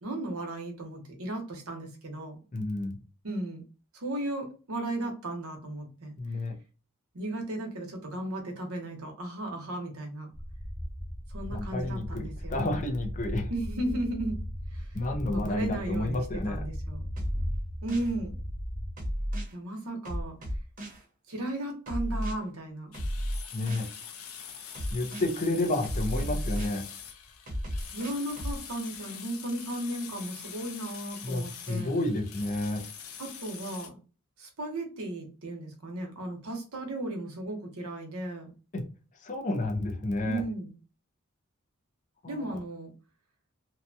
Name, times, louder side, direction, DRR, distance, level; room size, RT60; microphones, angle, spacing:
voice 1, 0.0-2.4 3.2-3.6 3.9-6.1 7.1-10.3 11.3-12.6 13.5-14.4 14.7-14.9 15.3-16.2 16.5-17.1 17.8-18.3 19.5-20.4 21.3-22.9 27.9-31.9 33.2-34.0 34.4-38.5 40.2-40.7 42.3-42.9, right 1 dB, 85° right, 3 dB, 0.9 m, -35 dB
voice 2, 2.5-3.0 6.2-6.5 11.5-13.5 14.9-16.6 23.5-23.9 24.9-26.9 31.2-32.8 38.7-38.8 39.2-40.4 42.2-42.6, left 2 dB, 35° left, 3 dB, 0.5 m, -31 dB
sound 1, 10.3-18.9, equal, 20° right, 0.4 m, -37 dB
sound 2, 17.2-18.1 19.0-19.5 20.0-21.0 21.9-22.3 22.9-23.9 24.7-25.3 25.8-26.8 27.5-28.6, equal, 40° right, 0.9 m, -33 dB
sound 3, 22.9-33.9, left 7 dB, 80° left, 0.6 m, -44 dB
2.7 x 2.2 x 2.6 m, 0.35 s
head